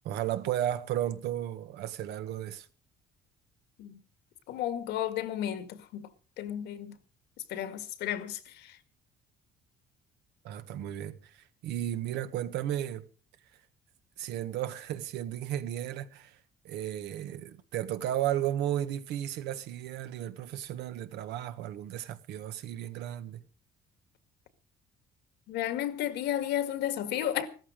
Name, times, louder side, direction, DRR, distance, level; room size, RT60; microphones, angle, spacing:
voice 1, 0.0-2.7 10.4-13.0 14.2-16.4 16.6-23.4, right 12 dB, 85° right, 1.5 m, -34 dB
voice 2, 4.5-6.1 6.4-6.9 7.5-8.8 25.5-27.5, left 11 dB, 85° left, 2.0 m, -33 dB
16.0 x 14.0 x 5.1 m
cardioid pair, 110°, 17 cm